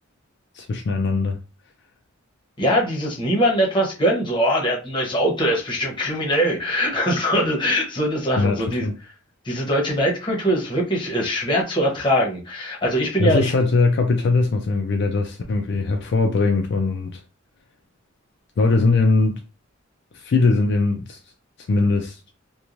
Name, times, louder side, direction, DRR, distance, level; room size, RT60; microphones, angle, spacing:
voice 1, 0.5-1.4 8.4-8.9 13.2-17.2 18.6-19.4 20.1-21.2 21.7-22.2, left 3 dB, 60° left, 0.4 m, -20 dB
voice 2, 2.6-8.9 9.4-13.5, equal, 25° left, 0.9 m, -22 dB
3.0 x 2.2 x 2.5 m
head